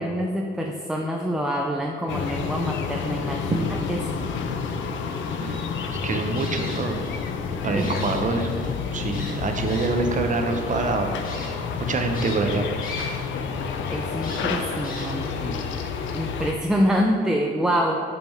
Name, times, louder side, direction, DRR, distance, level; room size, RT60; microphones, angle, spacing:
voice 1, 0.0-4.3 7.7-7.9 13.9-15.6 16.1-18.0, equal, 5° right, 1 dB, 0.4 m, -26 dB
sound 1, 2.1-16.5, left 5 dB, 75° left, 0.6 m, -29 dB
voice 2, 5.2-5.6 6.0-7.0 7.6-8.5 8.9-11.3 11.9-12.7, right 3 dB, 40° right, 4 dB, 0.8 m, -25 dB
sound 2, 6.4-7.3 7.6-8.7 9.1-10.1 10.7-10.8 11.2-11.5 12.1-13.3 13.6-13.7 14.2-15.3, left 2 dB, 45° left, 1.5 m, -39 dB
5.4 x 5.0 x 4.5 m, 2.3 s
cardioid pair, 90°, 20 cm